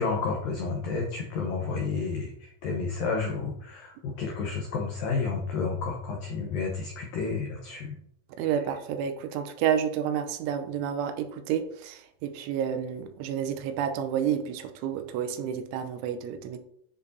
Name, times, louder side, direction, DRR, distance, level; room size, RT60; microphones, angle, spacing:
voice 1, 0.0-8.0 8.4-8.5, left 4 dB, 90° left, 0 dB, 2.0 m, -31 dB
voice 2, 8.4-16.6, right 8 dB, 85° right, 8 dB, 3.1 m, -30 dB
10.0 x 6.7 x 2.7 m, 0.68 s
omnidirectional pair, 5.6 m